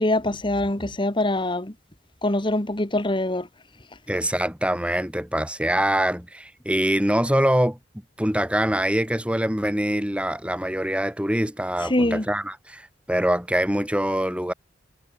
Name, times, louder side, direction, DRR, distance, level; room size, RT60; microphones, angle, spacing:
voice 1, 0.0-1.7 2.2-3.5 11.9-12.3, left 1 dB, 25° left, 1.9 m, -23 dB
voice 2, 4.1-7.8 8.2-14.5, right 1 dB, 5° right, 7.6 m, -24 dB
head